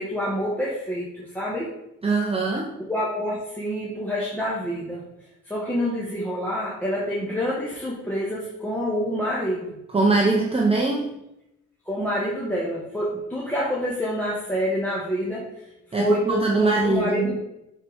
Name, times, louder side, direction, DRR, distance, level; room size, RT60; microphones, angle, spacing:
voice 1, 0.0-1.7 2.9-5.0 5.5-9.8 11.9-15.4 16.0-17.4, equal, 5° left, -6 dB, 1.8 m, -27 dB
voice 2, 2.0-2.7 9.9-11.1 15.9-17.3, right 3 dB, 20° right, -1 dB, 1.0 m, -22 dB
8.1 x 4.6 x 3.6 m, 0.86 s
cardioid pair, 90°, 30 cm